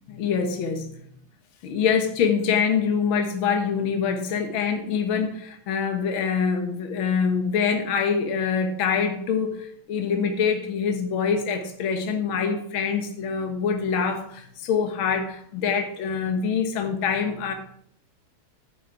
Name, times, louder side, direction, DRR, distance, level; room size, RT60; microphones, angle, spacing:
voice 1, 0.1-1.0 1.6-17.5, left 6 dB, 65° left, 5 dB, 2.0 m, -25 dB
9.6 x 9.3 x 4.7 m, 0.67 s
omnidirectional pair, 2.4 m